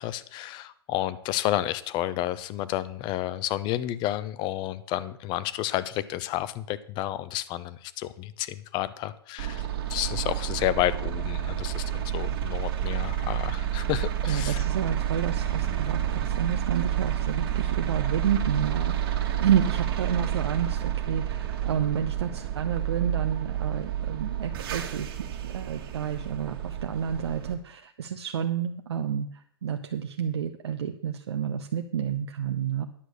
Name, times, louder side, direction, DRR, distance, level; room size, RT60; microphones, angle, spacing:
voice 1, 0.0-14.6, left 14 dB, 35° left, 16 dB, 0.7 m, -31 dB
sound 1, 9.4-27.5, right 11 dB, 60° right, 1.9 m, -29 dB
voice 2, 14.3-25.1 25.4-32.9, right 8 dB, 75° right, 5 dB, 0.8 m, -30 dB
10.0 x 6.3 x 6.6 m, 0.64 s
hypercardioid pair, 120°, 14 cm